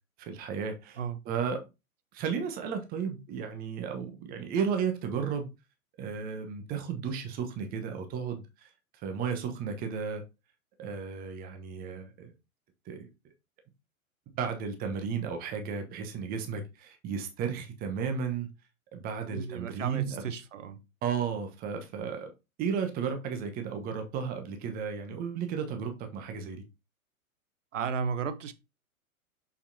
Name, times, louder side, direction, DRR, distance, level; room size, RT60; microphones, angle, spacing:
voice 1, 0.2-1.0 1.2-1.6 2.1-5.5 6.0-8.7 9.0-10.2 10.8-12.3 12.9-13.1 14.4-18.5 18.9-20.2 21.0-22.3 22.6-26.6, right 6 dB, 20° right, 1.1 m, -34 dB
voice 2, 19.3-20.8 27.7-28.5, right 6 dB, 60° right, 1.0 m, -34 dB
6.5 x 5.7 x 2.8 m
figure-of-eight pair, 110°, 43 cm